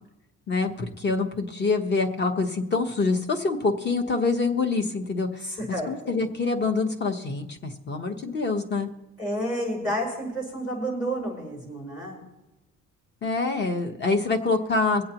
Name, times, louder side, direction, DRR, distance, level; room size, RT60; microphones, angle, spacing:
voice 1, 0.5-5.3 5.9-8.9 13.2-15.0, left 3 dB, 35° left, 6 dB, 1.1 m, -25 dB
voice 2, 5.4-6.2 9.2-12.2, equal, 55° left, -4 dB, 5.3 m, -30 dB
24.0 x 8.3 x 3.0 m, 0.98 s
cardioid pair, 140°, 29 cm